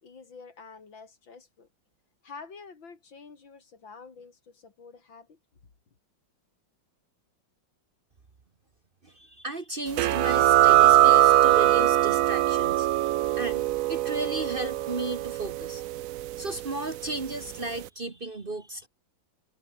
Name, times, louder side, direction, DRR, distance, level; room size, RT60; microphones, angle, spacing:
voice 1, 0.0-1.7 2.2-5.4, left 5 dB, 80° left, 3.9 m, -48 dB
voice 2, 9.0-12.9 13.4-15.9 16.4-18.9, right 2 dB, 30° right, 1.4 m, -34 dB
sound 1, 10.0-17.2, right 14 dB, 85° right, 0.7 m, -22 dB
omnidirectional pair, 2.1 m